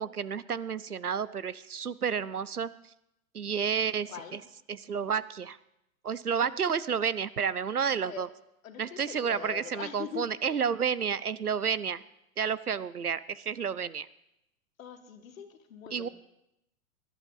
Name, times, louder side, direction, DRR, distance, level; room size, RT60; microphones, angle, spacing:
voice 1, 0.0-2.7 3.3-4.4 4.7-5.6 6.0-8.3 8.8-12.0 12.4-14.1 15.9-16.1, right 7 dB, 90° right, 18 dB, 0.8 m, -31 dB
voice 2, 8.6-10.3 14.8-16.1, left 8 dB, 65° left, 7 dB, 2.1 m, -42 dB
21.0 x 11.5 x 3.9 m, 0.84 s
figure-of-eight pair, 105°, 44 cm